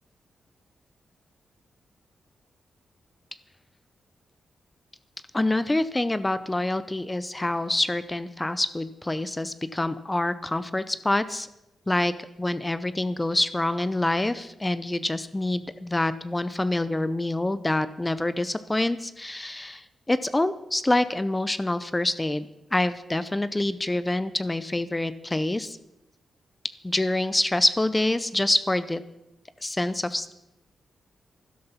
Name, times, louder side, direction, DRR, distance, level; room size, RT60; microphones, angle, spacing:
voice 1, 5.3-11.5 11.9-12.1 12.4-25.8 26.8-29.0 29.6-30.3, left 2 dB, 15° left, 14 dB, 0.6 m, -26 dB
12.5 x 11.5 x 5.7 m, 0.89 s
cardioid pair, 100°, 0 cm